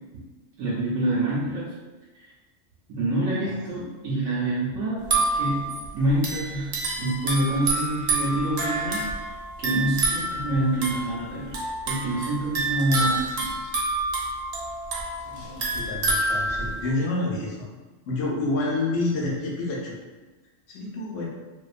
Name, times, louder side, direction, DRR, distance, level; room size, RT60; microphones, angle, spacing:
voice 1, 0.6-1.7 2.9-5.7 5.9-9.1 9.6-11.6 11.8-13.7, right 1 dB, 85° right, -7 dB, 1.0 m, -26 dB
sound 1, 5.0-16.9, right 2 dB, 60° right, 0.7 m, -28 dB
voice 2, 15.5-17.7 18.1-20.0 20.7-21.3, left 2 dB, 80° left, -3 dB, 1.0 m, -28 dB
2.6 x 2.1 x 2.4 m, 1.2 s
omnidirectional pair, 1.3 m